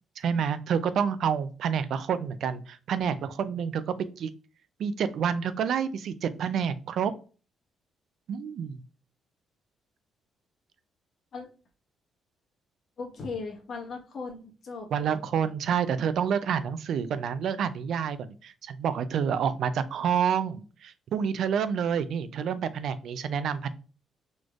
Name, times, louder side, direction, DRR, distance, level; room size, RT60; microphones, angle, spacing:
voice 1, 0.2-4.3 4.8-7.1 8.3-8.8 14.9-23.7, right 7 dB, 70° right, 13 dB, 0.3 m, -28 dB
voice 2, 13.0-14.9, left 4 dB, 55° left, 0 dB, 1.2 m, -37 dB
4.1 x 3.2 x 2.4 m, 0.36 s
cardioid pair, 90°, 0 cm